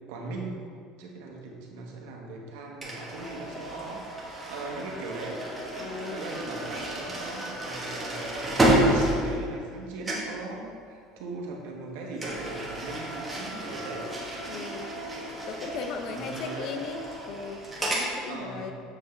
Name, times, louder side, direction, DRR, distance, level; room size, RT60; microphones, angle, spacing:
voice 1, 0.1-0.6 1.0-5.4 6.1-14.1 16.1-16.9 18.3-18.7, right 2 dB, 85° right, -1 dB, 1.4 m, -39 dB
sound 1, 2.8-9.8 10.0-10.4 12.2-18.1, right 1 dB, 10° right, 1.3 m, -30 dB
voice 2, 5.8-6.2 14.5-14.9 15.5-18.7, left 5 dB, 45° left, 6 dB, 0.6 m, -37 dB
7.5 x 5.8 x 3.3 m, 2.2 s
cardioid pair, 160°, 0 cm